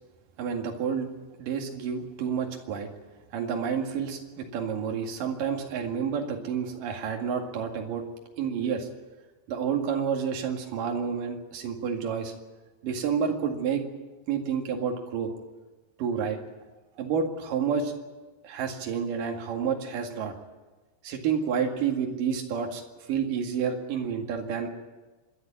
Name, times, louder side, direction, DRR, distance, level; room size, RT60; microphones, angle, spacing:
voice 1, 0.4-1.1 1.4-2.9 3.3-8.1 8.4-8.9 9.5-12.3 12.8-13.8 14.3-15.3 16.0-16.4 17.0-17.9 18.4-20.3 21.0-22.8 23.1-24.7, right 7 dB, 60° right, 2 dB, 3.4 m, -29 dB
26.5 x 11.5 x 10.0 m, 1.2 s
omnidirectional pair, 4.9 m